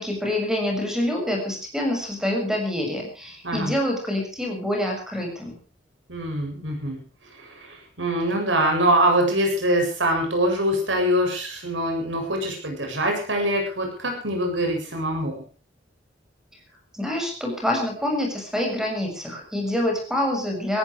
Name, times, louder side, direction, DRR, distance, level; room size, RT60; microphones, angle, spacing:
voice 1, 0.0-5.5 16.9-20.8, left 1 dB, 5° right, 1 dB, 6.9 m, -26 dB
voice 2, 6.1-7.0 7.4-15.4, right 1 dB, 80° right, 3 dB, 7.9 m, -24 dB
18.5 x 15.5 x 4.9 m, 0.38 s
head